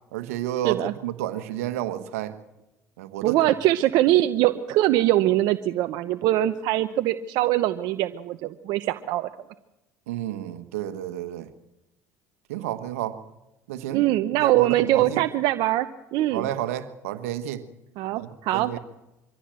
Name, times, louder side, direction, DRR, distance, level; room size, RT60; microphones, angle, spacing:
voice 1, 0.1-2.4 3.0-3.4 10.1-11.5 12.5-13.2 13.7-14.0 14.3-15.2 16.3-17.6 18.1-18.8, right 12 dB, 90° right, 10 dB, 1.4 m, -31 dB
voice 2, 3.2-9.3 13.9-16.5 18.0-18.8, right 14 dB, 70° right, 10 dB, 0.8 m, -22 dB
24.0 x 14.5 x 7.7 m, 0.96 s
supercardioid pair, 80°, 8 cm